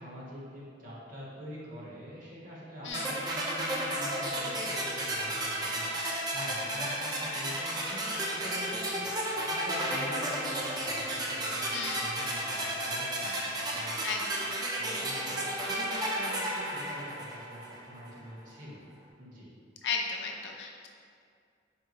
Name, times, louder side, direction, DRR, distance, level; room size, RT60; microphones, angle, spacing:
voice 1, 0.0-5.8 6.3-9.1 9.5-14.2 14.8-18.8 19.2-19.5, equal, 45° right, -6 dB, 0.9 m, -45 dB
sound 1, 2.9-17.8, right 1 dB, 20° right, 0.4 m, -33 dB
voice 2, 11.7-12.0 14.0-14.5 19.8-20.9, left 4 dB, 65° left, 1 dB, 0.4 m, -35 dB
4.5 x 2.0 x 3.9 m, 2.3 s
head